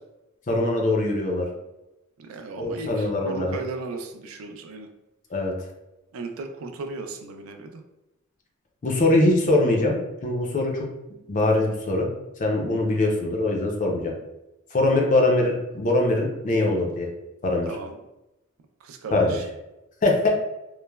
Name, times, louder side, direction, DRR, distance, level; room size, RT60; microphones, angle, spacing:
voice 1, 0.5-1.4 2.6-3.6 5.3-5.5 8.8-10.0 10.2-10.9 11.3-12.1 12.4-14.1 14.7-17.1 17.4-17.7 19.1-19.4 20.0-20.3, left 2 dB, 35° left, 1 dB, 0.4 m, -22 dB
voice 2, 2.2-4.9 6.1-7.8 13.0-13.2 15.3-15.5 17.7-18.0 18.8-19.4, right 3 dB, 75° right, 5 dB, 0.3 m, -36 dB
3.1 x 2.0 x 2.2 m, 0.95 s
head